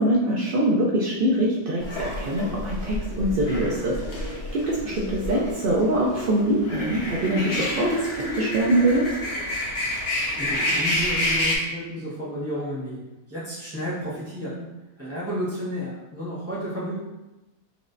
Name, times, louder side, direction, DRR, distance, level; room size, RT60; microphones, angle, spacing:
voice 1, 0.0-9.1, right 1 dB, 75° right, -4 dB, 0.5 m, -24 dB
sound 1, 1.8-11.6, left 1 dB, 50° left, 0.9 m, -29 dB
voice 2, 10.3-13.0 13.3-14.7 15.0-17.0, equal, 10° right, -9 dB, 1.2 m, -32 dB
4.7 x 3.1 x 2.5 m, 1.0 s
omnidirectional pair, 1.6 m